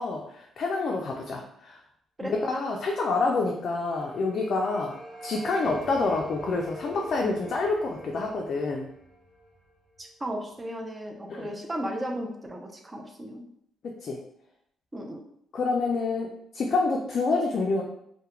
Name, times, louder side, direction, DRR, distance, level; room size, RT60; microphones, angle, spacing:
voice 1, 0.0-1.8 2.2-5.0 5.2-8.9 11.3-11.5 14.0-14.2 15.5-17.8, left 3 dB, 55° left, 0 dB, 0.3 m, -27 dB
sound 1, 3.4-10.4, right 1 dB, 50° right, 1.3 m, -45 dB
voice 2, 10.0-13.4 14.9-15.3, equal, 20° right, 2 dB, 0.5 m, -35 dB
2.3 x 2.1 x 2.9 m, 0.72 s
cardioid pair, 90°, 0 cm